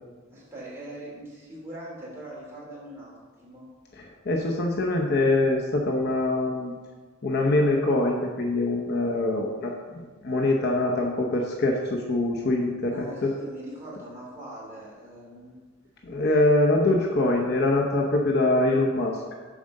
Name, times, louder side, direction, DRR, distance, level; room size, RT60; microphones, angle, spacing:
voice 1, 0.3-3.7 12.9-15.6, right 1 dB, 15° right, -7 dB, 2.9 m, -41 dB
voice 2, 4.0-6.7 7.2-13.3 16.0-19.3, left 2 dB, 50° left, 0 dB, 0.8 m, -24 dB
7.2 x 5.1 x 6.5 m, 1.5 s
head